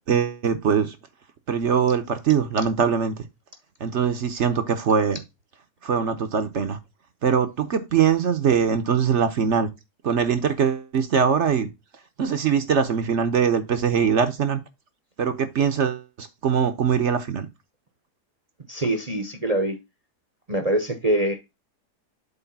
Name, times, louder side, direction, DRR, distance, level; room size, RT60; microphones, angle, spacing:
voice 1, 0.1-1.0 1.5-3.1 3.8-5.2 5.8-6.8 7.2-9.7 10.0-11.7 12.2-14.6 15.2-17.5, right 7 dB, 55° right, 1.0 m, -22 dB
voice 2, 18.7-19.8 20.5-21.4, right 1 dB, 30° right, 0.8 m, -24 dB
8.0 x 3.2 x 5.8 m
omnidirectional pair, 1.7 m